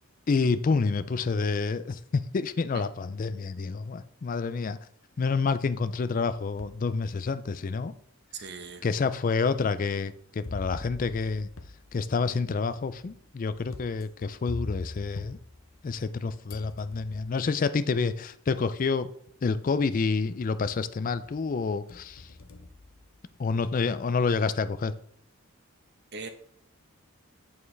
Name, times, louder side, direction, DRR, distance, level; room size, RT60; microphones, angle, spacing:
voice 1, 0.3-4.8 5.2-7.9 8.8-11.5 11.9-15.4 15.8-19.1 19.4-22.3 23.4-24.9, left 4 dB, 40° left, 0.4 m, -28 dB
sound 1, 6.2-6.9 7.5-7.6 8.5-8.6 10.4-16.2 16.5-17.5 18.6-18.7 19.3-19.7 20.1-20.9 21.2-23.6, left 2 dB, 65° left, 0.7 m, -44 dB
voice 2, 8.3-8.9 26.1-26.3, right 4 dB, 50° right, 1.0 m, -39 dB
8.5 x 7.1 x 3.3 m
head